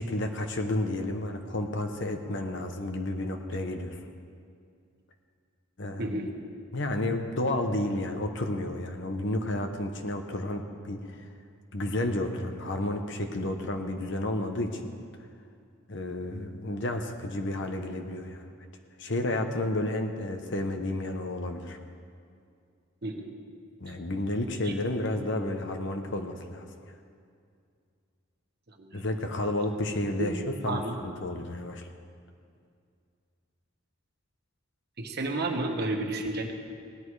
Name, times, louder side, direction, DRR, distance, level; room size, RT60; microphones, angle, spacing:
voice 1, 0.0-4.0 5.8-6.2 6.7-11.3 11.7-14.9 15.9-18.4 19.0-21.8 23.8-26.7 28.9-31.9, left 1 dB, 60° left, 5 dB, 1.1 m, -31 dB
voice 2, 6.0-6.3 23.0-23.3 24.6-24.7 28.8-29.0 30.2-30.4 30.6-31.1 35.0-36.5, right 2 dB, 50° right, 2 dB, 1.4 m, -31 dB
17.5 x 11.0 x 4.8 m, 2.3 s
head